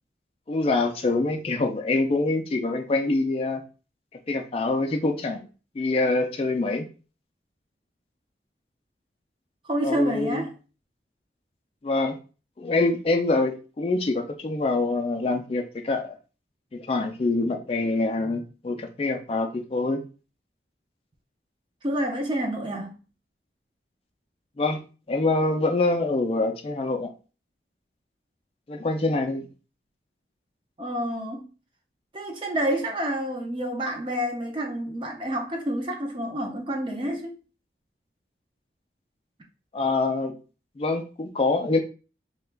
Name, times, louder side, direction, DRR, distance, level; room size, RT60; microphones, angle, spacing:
voice 1, 0.5-3.6 4.3-5.5 5.8-6.9 9.8-10.4 11.8-12.2 12.6-16.2 16.7-20.0 24.6-27.1 28.7-29.5 39.7-40.3 40.8-41.8, left 3 dB, 35° left, 0.3 m, -25 dB
voice 2, 9.6-10.5 21.8-22.9 30.8-31.5 32.1-37.4, right 1 dB, 30° right, 0.5 m, -28 dB
2.9 x 2.2 x 3.2 m
head